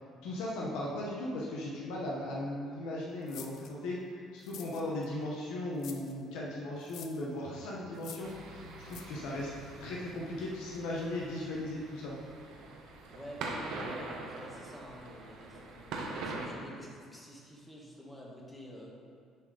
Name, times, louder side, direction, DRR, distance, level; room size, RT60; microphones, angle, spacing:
voice 1, 0.2-4.0 4.3-9.5 9.8-12.2, left 1 dB, 90° left, -4 dB, 1.0 m, -37 dB
sound 1, 3.3-3.7 4.4-5.1 5.8-6.1 6.8-7.2 8.0-8.4 8.9-9.0, left 8 dB, 65° left, 0.5 m, -47 dB
sound 2, 8.2-16.5, right 3 dB, 75° right, 0.9 m, -43 dB
voice 2, 13.1-19.0, equal, 10° left, -3 dB, 1.3 m, -49 dB
6.9 x 4.4 x 5.1 m, 2.2 s
cardioid pair, 125°, 0 cm